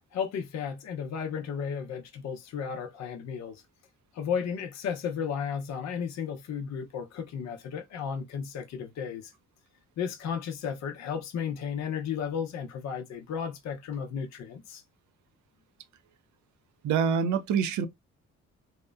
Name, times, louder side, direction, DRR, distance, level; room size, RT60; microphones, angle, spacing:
voice 1, 0.1-3.6 4.1-9.3 10.0-14.8, left 7 dB, 65° left, 0.6 m, -34 dB
voice 2, 16.8-17.9, right 7 dB, 75° right, 0.5 m, -25 dB
2.8 x 2.1 x 2.3 m
cardioid pair, 90°, 30 cm